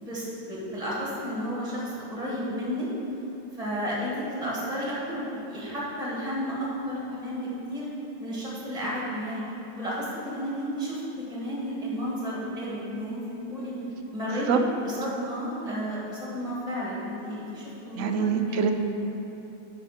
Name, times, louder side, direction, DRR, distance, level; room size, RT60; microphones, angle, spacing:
voice 1, 0.0-2.9 3.5-7.9 8.2-9.4 9.7-11.0 11.3-13.7 14.1-18.7, equal, 25° right, -6 dB, 2.0 m, -32 dB
voice 2, 18.0-18.7, right 6 dB, 65° right, 5 dB, 0.9 m, -25 dB
10.0 x 5.8 x 4.3 m, 3.0 s
omnidirectional pair, 1.7 m